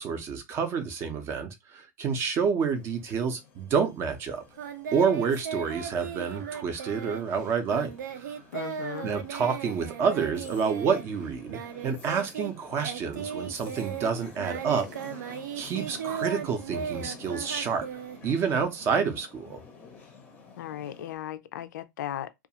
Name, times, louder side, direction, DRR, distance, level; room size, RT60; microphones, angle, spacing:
voice 1, 0.0-4.4 4.9-8.4 9.0-14.8 15.2-17.9 18.2-19.6, right 6 dB, 25° right, 0.5 m, -28 dB
sound 1, 2.6-21.2, left 5 dB, 15° left, 0.6 m, -51 dB
Singing, 4.6-12.5 12.8-18.6, right 8 dB, 85° right, 0.6 m, -37 dB
voice 2, 8.5-9.1 20.6-22.3, left 11 dB, 80° left, 0.4 m, -36 dB
2.4 x 2.3 x 2.8 m
supercardioid pair, 155°, 9 cm